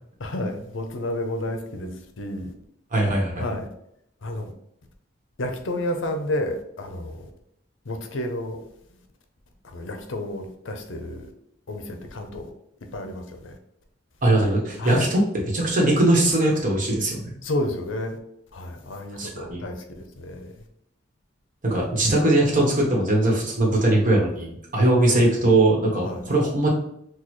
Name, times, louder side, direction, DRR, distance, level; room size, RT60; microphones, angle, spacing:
voice 1, 0.2-2.5 3.4-3.7 4.2-4.5 5.4-7.3 7.8-8.6 9.6-11.3 11.7-12.5 12.9-13.6 14.8-15.1 17.4-18.2 18.5-20.6 25.1-25.5 26.0-26.3, left 1 dB, 75° left, 5 dB, 0.7 m, -31 dB
voice 2, 2.9-3.4 14.2-15.2 15.5-17.3 19.2-19.6 21.6-26.7, right 1 dB, 45° right, -1 dB, 1.2 m, -20 dB
6.3 x 2.3 x 3.1 m, 0.76 s
head